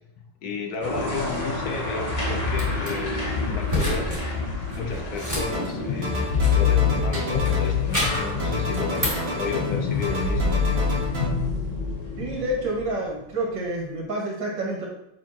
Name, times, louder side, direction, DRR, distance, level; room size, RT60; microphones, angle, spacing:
voice 1, 0.4-4.1 4.8-10.6, left 4 dB, 60° left, 3 dB, 1.1 m, -33 dB
sound 1, 0.8-13.3, left 5 dB, 30° left, 0.8 m, -26 dB
sound 2, 2.5-2.9 3.7-4.2 4.5-6.7 7.1-8.3 8.7-9.3, left 1 dB, 10° right, 2.8 m, -29 dB
sound 3, 5.4-5.8 6.0-7.8 8.0-9.8 10.0-11.3, equal, 35° right, 1.6 m, -31 dB
voice 2, 12.2-14.9, right 1 dB, 65° right, -1 dB, 2.4 m, -28 dB
7.3 x 5.8 x 2.9 m, 0.79 s
omnidirectional pair, 2.2 m